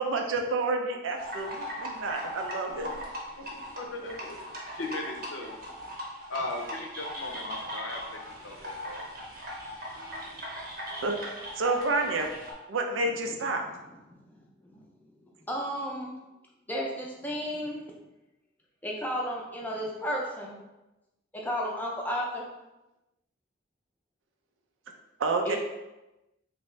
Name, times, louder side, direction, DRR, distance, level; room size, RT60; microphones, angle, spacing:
voice 1, 0.0-2.9 11.0-11.2 11.6-12.3 12.7-13.6 25.2-25.6, right 3 dB, 75° right, 3 dB, 0.5 m, -29 dB
sound 1, 1.2-12.5, equal, 45° right, 0.8 m, -39 dB
voice 2, 2.6-3.0 3.4-4.4 4.7-5.6 6.3-9.0, left 2 dB, 70° left, 2 dB, 0.6 m, -38 dB
voice 3, 14.1-14.8 15.5-16.1 16.7-17.8 18.8-20.6 21.3-22.5 25.4-25.6, equal, 10° left, -2 dB, 0.5 m, -33 dB
3.4 x 2.8 x 3.1 m, 0.99 s
head